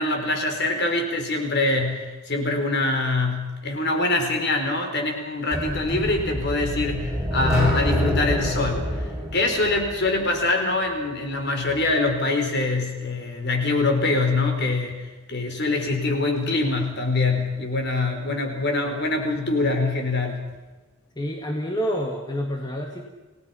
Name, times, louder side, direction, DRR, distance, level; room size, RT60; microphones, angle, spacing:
voice 1, 0.0-9.0 9.3-20.5, left 2 dB, 50° left, 4 dB, 4.4 m, -24 dB
sound 1, 5.5-10.4, equal, 5° right, 5.4 m, -27 dB
voice 2, 21.2-23.0, equal, 20° left, 2 dB, 1.8 m, -28 dB
29.5 x 18.0 x 5.8 m, 1.2 s
head